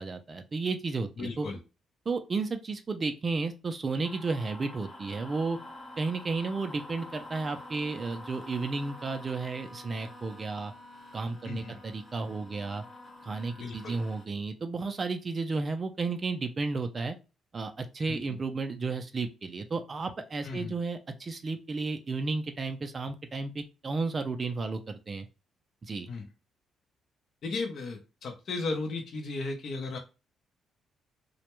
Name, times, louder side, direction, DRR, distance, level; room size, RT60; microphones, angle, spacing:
voice 1, 0.0-1.5 2.1-5.6 6.0-10.7 11.1-12.8 13.2-17.2 17.5-25.3 25.8-26.1, right 3 dB, 35° right, 6 dB, 0.3 m, -33 dB
voice 2, 1.2-1.6 11.4-11.8 13.6-14.0 18.0-18.2 20.4-20.7 26.1-26.3 27.4-30.0, left 3 dB, 60° left, 2 dB, 0.6 m, -35 dB
sound 1, 4.0-14.2, left 1 dB, 30° left, 1.0 m, -47 dB
2.2 x 2.1 x 2.9 m, 0.30 s
cardioid pair, 90°, 0 cm